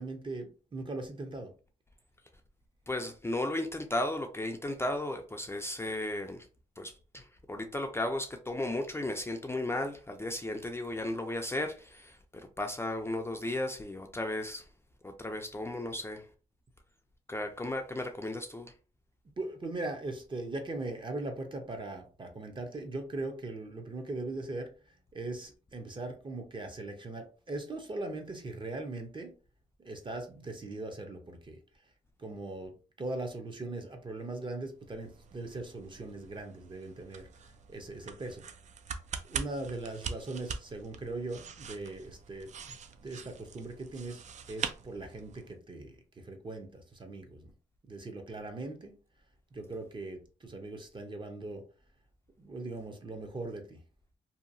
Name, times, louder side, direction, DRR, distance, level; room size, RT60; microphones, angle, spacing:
voice 1, 0.0-1.5 19.4-29.3 29.8-31.6 32.2-38.5 39.2-42.8 43.0-44.2 44.5-47.5 47.9-49.0 49.5-51.6 52.4-53.8, right 2 dB, 35° right, 0.7 m, -40 dB
voice 2, 2.9-6.5 6.8-14.7 15.0-16.3 17.3-18.7, left 1 dB, 15° left, 0.4 m, -35 dB
sound 1, 34.8-45.5, right 6 dB, 55° right, 0.4 m, -43 dB
2.8 x 2.3 x 2.6 m
cardioid pair, 65°, 15 cm